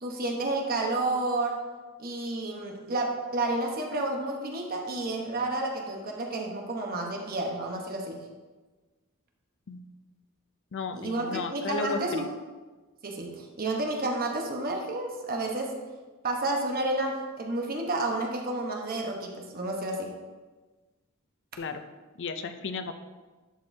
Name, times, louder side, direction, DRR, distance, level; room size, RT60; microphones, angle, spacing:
voice 1, 0.0-1.6 2.0-8.2 10.9-12.3 13.0-15.8 16.2-20.1, right 2 dB, 45° right, 1 dB, 1.0 m, -30 dB
voice 2, 10.7-12.3 21.6-21.8 22.2-22.9, left 4 dB, 55° left, 8 dB, 0.5 m, -34 dB
11.0 x 5.2 x 2.7 m, 1.3 s
head